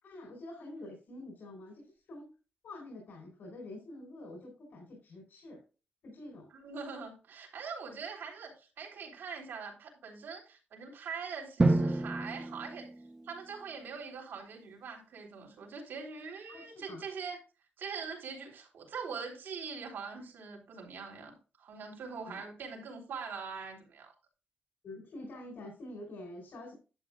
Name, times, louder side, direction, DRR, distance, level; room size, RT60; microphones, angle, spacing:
voice 1, 0.0-2.3 2.6-5.6 6.0-6.5 16.5-17.0 22.2-22.5 23.3-23.5 24.8-26.7, left 1 dB, 70° left, 4.2 m, -47 dB
voice 2, 6.5-12.9 13.3-17.4 17.8-24.1, right 5 dB, 85° right, 3.6 m, -43 dB
Drum, 11.6-13.5, right 2 dB, 20° right, 0.7 m, -29 dB
11.5 x 8.7 x 2.4 m
wide cardioid pair, 155°, 4 cm